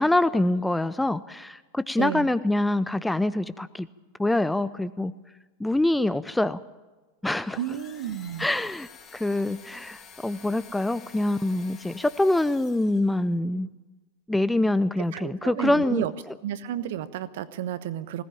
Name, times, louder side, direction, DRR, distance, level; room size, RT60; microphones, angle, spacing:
voice 1, 0.0-3.9 4.2-5.1 5.6-6.6 7.2-7.6 8.4-13.7 14.3-16.1, left 1 dB, 5° left, 16 dB, 0.6 m, -25 dB
sound 1, 7.4-13.2, left 7 dB, 25° left, 3.6 m, -49 dB
voice 2, 7.5-8.5 15.1-16.1 16.4-18.2, right 11 dB, 55° right, 14 dB, 1.2 m, -31 dB
20.0 x 18.0 x 8.9 m, 1.2 s
figure-of-eight pair, 90°, 0 cm